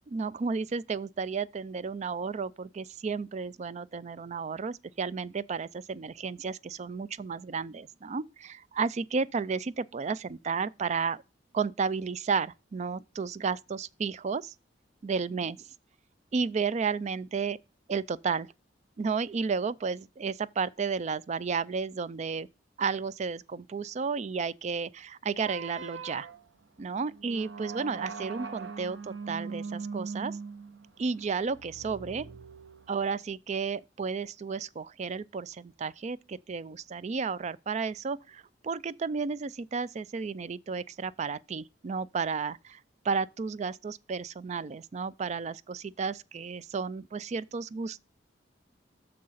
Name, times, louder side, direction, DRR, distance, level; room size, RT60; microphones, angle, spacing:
voice 1, 0.1-11.2 11.5-14.5 15.0-15.6 16.3-17.6 17.9-18.5 19.0-22.5 22.8-26.3 26.8-30.4 31.0-32.3 32.9-42.8 43.0-48.0, right 5 dB, 40° right, 0.4 m, -32 dB
sound 1, 25.4-33.2, right 4 dB, 80° right, 0.9 m, -41 dB
6.6 x 6.4 x 5.6 m
head